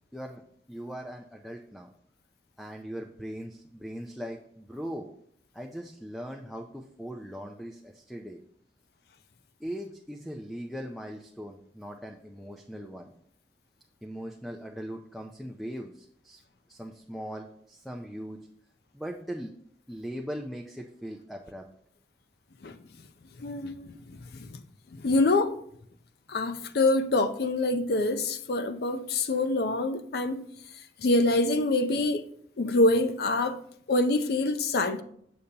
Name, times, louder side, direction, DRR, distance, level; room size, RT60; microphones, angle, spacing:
voice 1, 0.7-1.9 2.6-5.1 5.5-8.4 9.6-13.1 14.0-16.4 16.7-18.4 18.9-19.5 19.9-21.7, equal, ahead, 0.4 m, -39 dB
voice 2, 23.4-24.6 24.9-25.6 26.3-30.4 31.0-32.3 32.6-33.6 33.9-35.0, left 2 dB, 60° left, 0.5 m, -26 dB
6.7 x 6.7 x 2.8 m
head